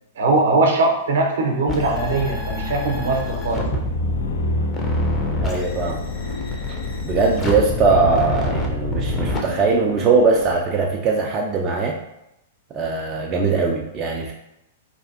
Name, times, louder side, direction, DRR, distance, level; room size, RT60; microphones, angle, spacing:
voice 1, 0.2-3.6, right 2 dB, 60° right, 1 dB, 0.7 m, -20 dB
sound 1, 1.7-9.4, left 1 dB, 20° left, 0.6 m, -25 dB
sound 2, 2.8-10.6, left 5 dB, 60° left, 0.3 m, -35 dB
voice 2, 5.4-6.0 7.0-12.0 12.7-14.3, right 4 dB, 25° right, -1 dB, 0.3 m, -20 dB
4.1 x 2.5 x 2.5 m, 0.87 s
figure-of-eight pair, 100°, 0 cm